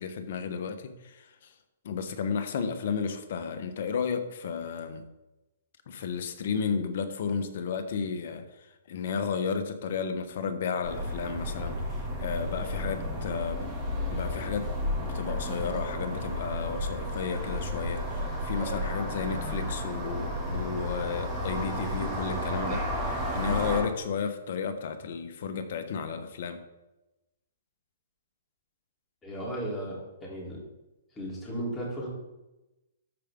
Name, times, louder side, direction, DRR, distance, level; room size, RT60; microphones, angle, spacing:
voice 1, 0.0-1.5 1.8-5.0 5.9-8.4 8.9-11.8 12.2-13.7 14.1-14.7 15.0-26.6, left 6 dB, 60° left, 8 dB, 1.1 m, -33 dB
sound 1, 10.8-23.8, left 1 dB, 20° right, 2.6 m, -32 dB
voice 2, 29.2-30.6 31.2-32.1, right 1 dB, 15° left, -5 dB, 3.6 m, -35 dB
13.0 x 5.0 x 3.8 m, 0.98 s
hypercardioid pair, 140°, 0 cm